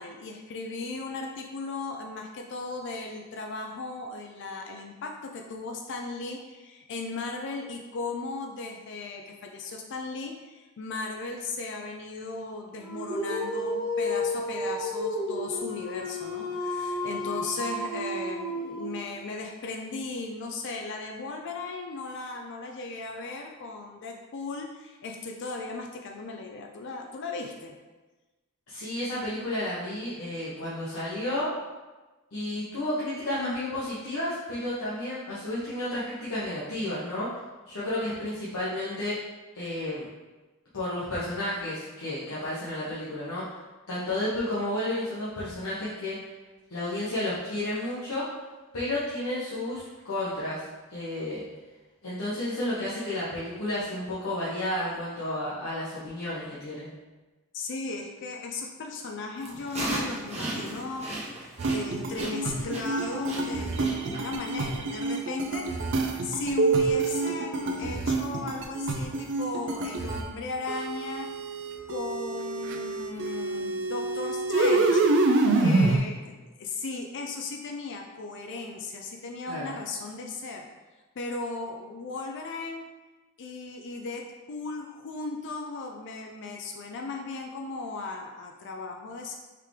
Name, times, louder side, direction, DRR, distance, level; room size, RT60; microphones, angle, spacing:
voice 1, 0.0-27.7 57.5-65.7 66.2-71.3 71.9-75.1 75.6-80.7 81.2-82.8 83.4-89.4, left 3 dB, 55° left, 3 dB, 0.4 m, -36 dB
Dog, 12.8-19.2, left 1 dB, 70° left, 0.9 m, -32 dB
voice 2, 28.7-31.5 32.3-37.3 37.7-39.2 39.5-40.1 40.7-43.4 43.9-46.2 46.7-48.3 48.7-51.4 52.0-56.9 79.5-79.7, left 1 dB, 85° left, -9 dB, 1.1 m, -32 dB
sound 1, 59.4-64.5, right 2 dB, 30° right, 1.0 m, -35 dB
sound 2, 61.6-70.3 70.7-76.0, right 3 dB, 55° right, 0.5 m, -27 dB
4.7 x 3.2 x 3.5 m, 1.2 s
head